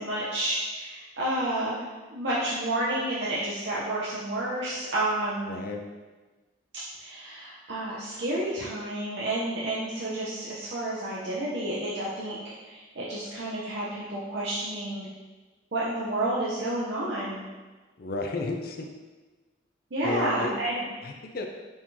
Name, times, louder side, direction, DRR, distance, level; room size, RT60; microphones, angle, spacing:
voice 1, 0.0-1.8 2.1-5.6 7.0-12.4 12.6-15.1 15.7-17.5 19.9-20.8, right 1 dB, 65° right, -7 dB, 0.7 m, -30 dB
voice 2, 5.5-5.8 18.0-18.9 20.0-20.5 21.0-21.5, left 2 dB, 50° left, 3 dB, 0.4 m, -32 dB
4.8 x 3.7 x 2.7 m, 1.3 s
head